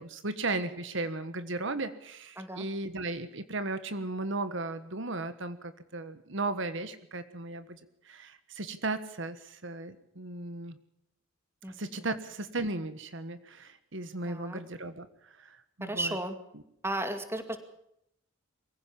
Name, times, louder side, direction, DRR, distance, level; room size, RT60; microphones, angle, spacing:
voice 1, 0.0-10.8 11.7-16.2, right 2 dB, 65° right, 12 dB, 1.5 m, -36 dB
voice 2, 2.4-2.7 11.6-12.1 14.3-14.6 15.8-16.4 16.8-17.6, right 1 dB, 10° right, 8 dB, 2.3 m, -35 dB
23.5 x 16.0 x 7.2 m, 0.78 s
head